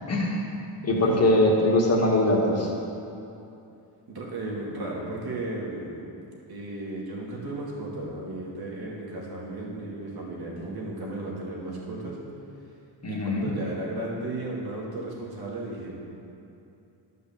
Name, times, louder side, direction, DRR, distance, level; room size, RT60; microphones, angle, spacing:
voice 1, 0.1-0.5 0.8-2.7 13.0-13.5, left 1 dB, 30° left, -2 dB, 1.7 m, -22 dB
voice 2, 4.1-6.0 6.5-12.2 13.1-15.9, right 2 dB, 50° right, -3 dB, 2.4 m, -34 dB
12.5 x 5.4 x 7.1 m, 2.7 s
wide cardioid pair, 150°, 47 cm